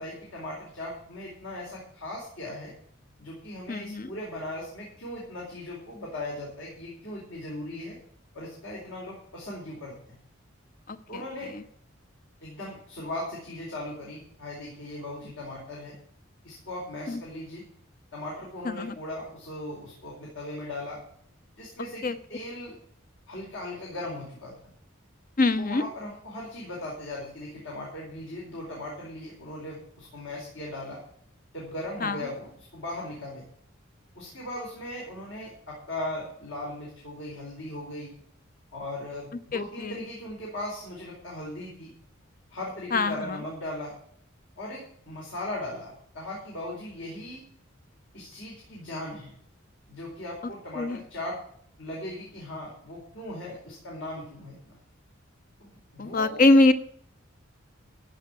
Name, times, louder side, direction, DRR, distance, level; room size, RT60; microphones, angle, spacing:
voice 1, 0.0-2.7 3.2-8.0 8.3-10.2 11.1-11.5 12.4-15.9 16.4-17.6 18.1-21.0 21.6-22.8 23.3-24.7 25.6-31.0 31.5-33.4 34.1-38.1 38.7-41.9 42.5-43.9 44.6-47.4 48.1-49.3 49.9-51.4 51.8-54.8 55.6-56.4, left 1 dB, 65° left, -4 dB, 4.6 m, -38 dB
voice 2, 3.7-4.1 10.9-11.2 11.5-11.6 17.1-17.2 18.7-18.9 22.0-22.1 25.4-25.8 32.0-32.2 39.5-40.0 42.9-43.2 50.8-51.0 56.0-56.7, left 2 dB, 45° left, 11 dB, 0.9 m, -23 dB
15.0 x 5.7 x 8.6 m, 0.63 s
head